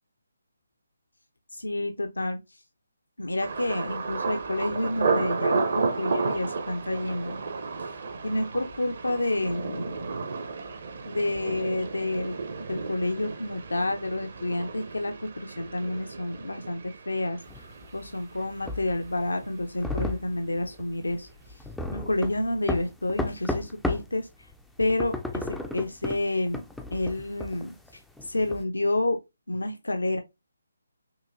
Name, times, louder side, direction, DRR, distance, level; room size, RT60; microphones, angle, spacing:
voice 1, 1.5-2.6 3.2-7.4 7.8-10.2 11.1-21.6 21.9-24.5 24.8-26.6 26.9-27.7 28.2-29.2 29.5-30.2, left 2 dB, 75° left, 0.7 m, -29 dB
Thunder, 3.4-19.2 19.4-20.1 20.5-20.7, right 4 dB, 45° right, 0.8 m, -33 dB
sound 1, 17.5-24.2 24.5-28.6, left 2 dB, ahead, 0.4 m, -34 dB
5.8 x 2.8 x 2.6 m
figure-of-eight pair, 145°, 0 cm